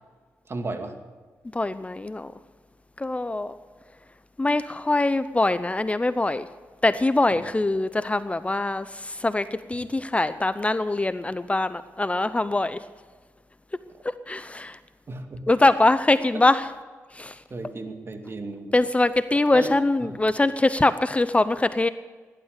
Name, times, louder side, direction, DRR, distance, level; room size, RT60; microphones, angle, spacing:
voice 1, 0.5-0.9 7.3-7.5 15.1-15.5 17.5-18.7 19.5-19.7 20.0-20.2, right 2 dB, 45° right, 5 dB, 2.3 m, -34 dB
voice 2, 1.5-2.3 3.0-3.5 4.4-6.5 6.8-12.8 14.0-14.8 15.5-16.7 17.2-17.3 18.7-21.9, left 2 dB, 20° left, 13 dB, 0.7 m, -23 dB
17.5 x 12.0 x 6.7 m, 1.4 s
cardioid pair, 60°, 6 cm